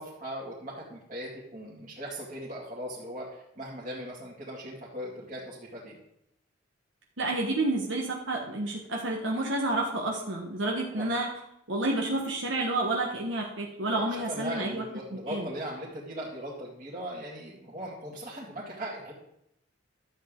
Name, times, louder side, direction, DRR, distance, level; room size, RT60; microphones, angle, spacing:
voice 1, 0.0-6.0 10.9-11.1 13.9-19.1, equal, 40° right, -8 dB, 2.2 m, -39 dB
voice 2, 7.2-11.3 11.7-14.8 15.1-15.5, right 2 dB, 80° right, -1 dB, 1.4 m, -30 dB
12.0 x 7.6 x 3.8 m, 0.80 s
head